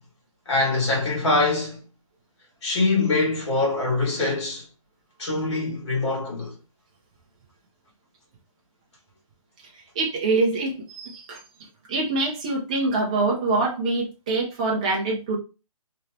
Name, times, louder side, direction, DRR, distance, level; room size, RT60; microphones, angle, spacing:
voice 1, 0.5-1.8 2.6-4.6 5.2-6.6, left 3 dB, 50° left, 2.0 m, -23 dB
voice 2, 9.9-11.4 11.9-15.4, right 3 dB, 10° right, 0.5 m, -24 dB
3.2 x 3.0 x 2.8 m
hypercardioid pair, 175°, 19 cm